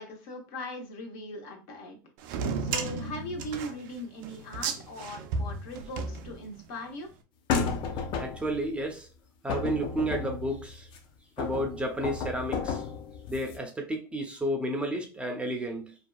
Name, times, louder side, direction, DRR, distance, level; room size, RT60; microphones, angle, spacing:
voice 1, 0.0-2.0 2.6-7.1, left 1 dB, 65° left, 0.8 m, -39 dB
sound 1, 2.2-6.8, right 4 dB, 70° right, 0.4 m, -34 dB
sound 2, 7.5-8.6 9.5-11.0 11.4-13.6, left 5 dB, 45° left, 0.5 m, -32 dB
voice 2, 8.2-9.1 9.4-10.9 11.4-12.8 13.3-15.9, right 1 dB, 10° right, 0.5 m, -32 dB
2.7 x 2.2 x 2.2 m
supercardioid pair, 110°, 11 cm